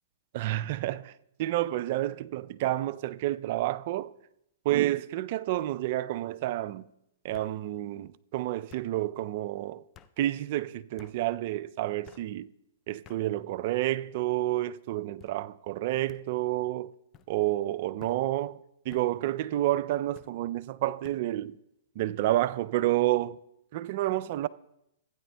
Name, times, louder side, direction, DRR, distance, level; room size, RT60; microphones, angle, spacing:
voice 1, 0.3-4.1 4.6-6.9 7.2-9.8 10.2-12.5 12.9-16.9 17.3-18.6 18.9-21.6 22.0-23.4 23.7-24.5, right 15 dB, 50° right, 0.3 m, -29 dB
sound 1, 3.9-4.3 4.7-5.2 6.3-6.4 7.3-7.6 8.7-8.9 9.9-10.1 11.0-11.2 12.0-12.3 13.0-13.2 14.0-14.4 15.2-15.4 16.1-16.2 17.1-17.3 18.0-18.2 18.9-19.1 20.1-20.3 21.0-21.2, left 10 dB, 25° left, 0.4 m, -54 dB
15.5 x 9.5 x 2.2 m
hypercardioid pair, 130°, 0 cm